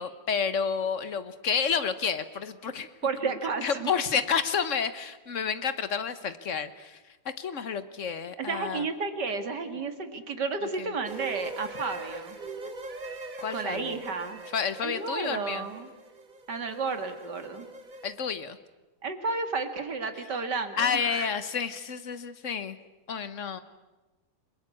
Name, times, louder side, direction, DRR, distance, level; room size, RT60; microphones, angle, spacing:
voice 1, 0.0-2.9 3.6-7.0 7.4-8.8 10.8-10.9 13.4-14.0 14.5-15.7 18.0-18.6 20.8-22.8 23.1-23.6, left 6 dB, 45° left, 12 dB, 1.2 m, -30 dB
voice 2, 3.0-3.9 8.4-12.4 13.5-14.4 14.8-15.9 16.5-17.7 19.0-21.3, right 4 dB, 50° right, 8 dB, 2.5 m, -32 dB
sound 1, 11.0-18.1, right 2 dB, 30° right, 1.1 m, -42 dB
30.0 x 21.5 x 8.4 m, 1.1 s
omnidirectional pair, 2.4 m